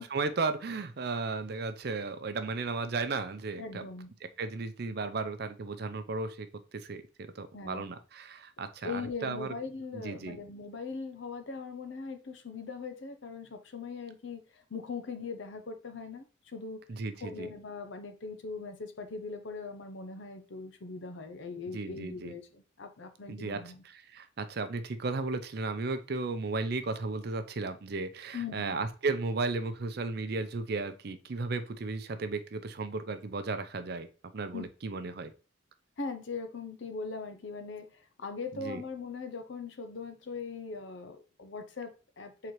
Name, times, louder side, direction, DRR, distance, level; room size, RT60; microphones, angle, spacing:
voice 1, 0.1-3.8 4.4-6.5 6.7-7.0 7.4-9.5 9.9-10.4 16.9-17.5 21.7-22.3 23.3-23.6 23.8-34.1 34.3-35.3 38.5-38.8, right 3 dB, 50° right, 0.5 m, -34 dB
voice 2, 3.6-4.1 7.5-7.9 8.8-16.8 17.2-23.8 28.3-28.8 34.5-34.6 36.0-42.5, left 4 dB, 65° left, 0.6 m, -40 dB
4.5 x 3.8 x 3.1 m
head